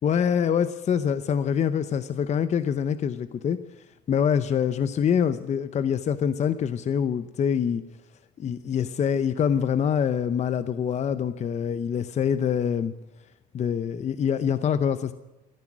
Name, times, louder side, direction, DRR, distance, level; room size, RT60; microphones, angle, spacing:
voice 1, 0.0-3.6 4.1-7.8 8.4-12.9 13.5-15.1, left 8 dB, 45° left, 12 dB, 0.7 m, -25 dB
17.0 x 13.5 x 6.1 m, 1.0 s
cardioid pair, 110°, 17 cm